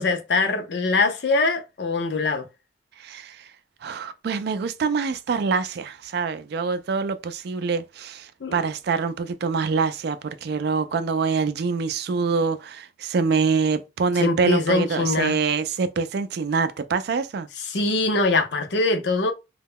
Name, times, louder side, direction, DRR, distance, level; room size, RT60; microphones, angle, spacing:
voice 1, 0.0-2.5 8.4-8.6 14.2-15.4 17.6-19.3, left 3 dB, 60° left, 0.5 m, -23 dB
voice 2, 3.0-3.5 3.8-17.5, right 5 dB, 60° right, 0.3 m, -25 dB
2.2 x 2.0 x 3.5 m
head